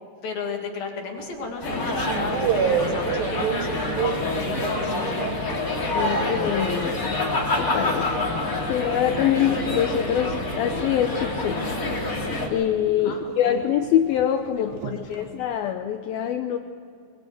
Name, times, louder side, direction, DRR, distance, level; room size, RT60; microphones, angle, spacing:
voice 1, 0.2-4.0 4.3-5.4 9.2-9.4 13.0-13.6 14.6-15.3, left 4 dB, 55° left, 0 dB, 4.4 m, -35 dB
sound 1, 1.2-6.4 6.7-15.6, right 7 dB, 70° right, 2.4 m, -32 dB
sound 2, 1.6-12.5, left 2 dB, 20° left, 3.0 m, -27 dB
voice 2, 5.9-7.2 7.5-8.2 8.7-11.7 12.5-16.6, left 10 dB, 80° left, 6 dB, 2.3 m, -24 dB
23.0 x 22.5 x 8.1 m, 2.3 s
omnidirectional pair, 5.2 m